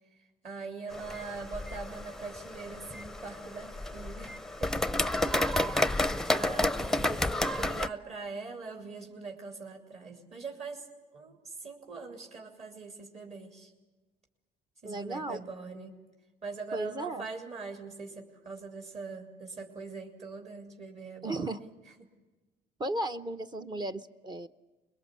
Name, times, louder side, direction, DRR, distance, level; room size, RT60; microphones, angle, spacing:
voice 1, 0.1-4.7 5.6-10.9 11.1-13.7 14.8-16.0 16.4-21.7 22.0-22.1, right 4 dB, 40° right, 2 dB, 3.5 m, -43 dB
sound 1, 0.9-7.9, left 1 dB, ahead, 0.7 m, -31 dB
voice 2, 14.8-15.4 16.7-17.3 21.2-21.6 22.8-24.5, right 2 dB, 25° right, 8 dB, 0.9 m, -35 dB
25.0 x 22.0 x 8.5 m, 1.2 s
cardioid pair, 110°, 17 cm